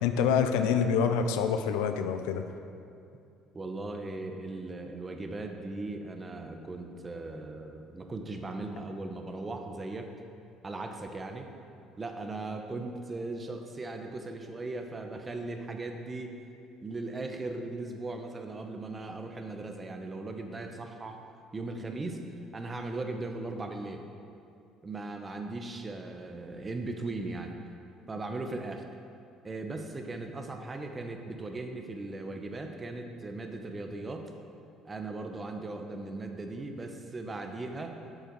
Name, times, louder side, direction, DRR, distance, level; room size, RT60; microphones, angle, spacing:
voice 1, 0.0-2.4, left 7 dB, 90° left, 8 dB, 0.5 m, -26 dB
voice 2, 3.5-10.1 10.6-11.5 12.0-16.4 16.8-21.2 21.5-22.2 22.5-24.0 24.8-27.5 28.1-28.8 29.4-34.3 34.8-38.0, right 2 dB, 25° right, 5 dB, 0.9 m, -38 dB
8.2 x 6.7 x 4.6 m, 2.5 s
supercardioid pair, 90°, 0 cm